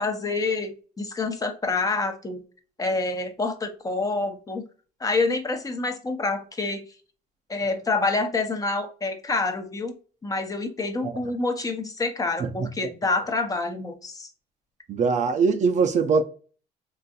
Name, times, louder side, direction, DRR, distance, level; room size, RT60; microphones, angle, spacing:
voice 1, 0.0-2.4 2.8-4.6 5.0-6.8 7.5-9.9 10.2-14.3, left 3 dB, 20° left, 0.6 m, -27 dB
voice 2, 14.9-16.2, right 5 dB, 45° right, 0.5 m, -22 dB
4.0 x 2.5 x 2.3 m
cardioid pair, 110°, 17 cm